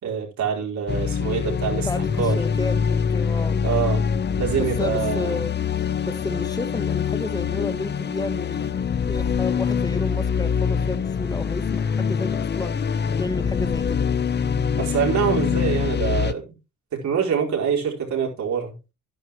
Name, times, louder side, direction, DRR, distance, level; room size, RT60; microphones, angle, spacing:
voice 1, 0.0-2.4 3.6-4.0 4.4-5.4 14.8-16.4 16.9-18.7, right 7 dB, 70° right, 4.7 m, -25 dB
sound 1, 0.9-16.3, left 6 dB, 35° left, 0.8 m, -24 dB
voice 2, 1.8-3.6 4.6-5.5 6.1-12.8 13.2-14.1, left 2 dB, 15° left, 1.2 m, -31 dB
11.5 x 11.0 x 3.1 m
cardioid pair, 90°, 30 cm